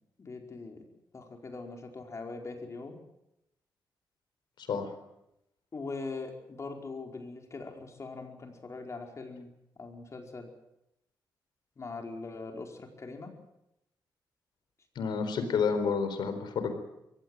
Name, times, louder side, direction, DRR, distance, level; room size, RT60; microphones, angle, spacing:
voice 1, 0.2-3.0 5.7-9.5 9.8-10.5 11.8-13.3, left 3 dB, 40° left, 3 dB, 4.8 m, -41 dB
voice 2, 15.0-16.7, left 5 dB, 75° left, 9 dB, 4.2 m, -29 dB
23.0 x 16.0 x 9.2 m, 0.85 s
cardioid pair, 95°, 8 cm